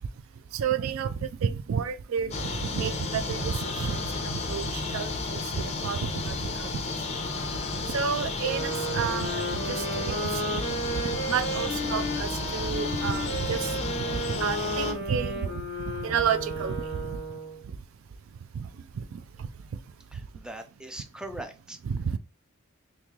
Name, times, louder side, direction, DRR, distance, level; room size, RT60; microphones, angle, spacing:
voice 1, 0.5-6.0 6.2-6.7 7.9-11.0 11.3-13.7 14.1-15.6 15.9-17.2 18.6-18.7 19.1-19.2 21.8-22.2, right 7 dB, 70° right, 0.4 m, -31 dB
sound 1, 2.3-14.9, left 3 dB, 35° left, 0.7 m, -32 dB
sound 2, 8.4-17.6, right 1 dB, 50° right, 1.7 m, -33 dB
voice 2, 20.1-21.8, right 1 dB, 5° right, 0.4 m, -41 dB
3.0 x 2.8 x 3.6 m
head